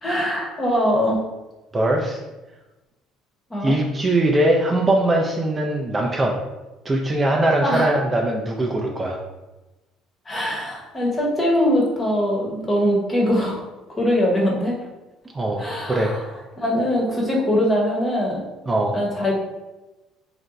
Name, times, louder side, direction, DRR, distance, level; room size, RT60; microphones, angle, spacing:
voice 1, 0.0-1.2 3.5-3.7 7.6-7.9 10.3-13.6 14.0-14.8 15.6-16.2 16.6-18.4 18.9-19.5, equal, 20° left, -2 dB, 0.8 m, -22 dB
voice 2, 1.7-2.2 3.6-6.4 6.8-9.2 15.3-16.1 18.7-19.0, right 1 dB, 20° right, 0 dB, 0.4 m, -21 dB
2.5 x 2.2 x 3.9 m, 1.1 s
cardioid pair, 105°, 0 cm